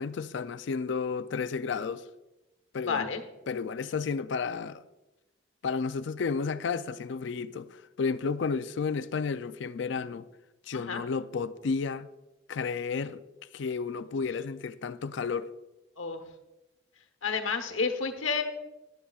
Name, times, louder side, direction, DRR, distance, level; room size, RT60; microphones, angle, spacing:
voice 1, 0.0-2.1 2.7-3.1 3.5-4.8 5.6-10.3 10.7-12.1 12.5-13.2 13.5-15.5, left 5 dB, 65° left, 0.4 m, -32 dB
voice 2, 2.8-3.2 10.7-11.0 16.0-16.2 17.2-18.4, left 5 dB, 85° left, 1.1 m, -30 dB
14.0 x 11.5 x 2.4 m
head